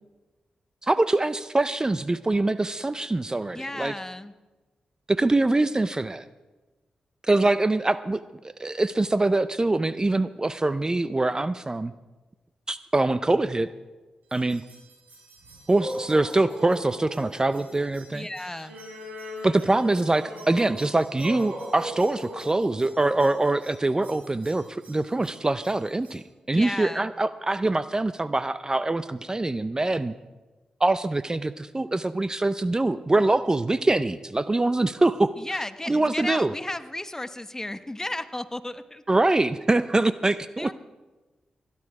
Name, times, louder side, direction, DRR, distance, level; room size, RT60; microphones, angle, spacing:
voice 1, 0.8-3.9 5.1-6.2 7.2-11.9 12.7-13.7 14.3-14.6 15.7-18.3 19.4-30.1 30.8-35.3 35.9-36.5 39.1-40.7, right 2 dB, 25° right, 14 dB, 0.5 m, -24 dB
voice 2, 3.5-4.3 18.1-18.8 26.5-27.1 35.4-39.0 40.6-40.7, left 1 dB, 20° left, 12 dB, 0.9 m, -34 dB
sound 1, 14.3-26.2, equal, 80° right, 5.8 m, -41 dB
17.5 x 11.0 x 4.8 m, 1.2 s
supercardioid pair, 45°, 3 cm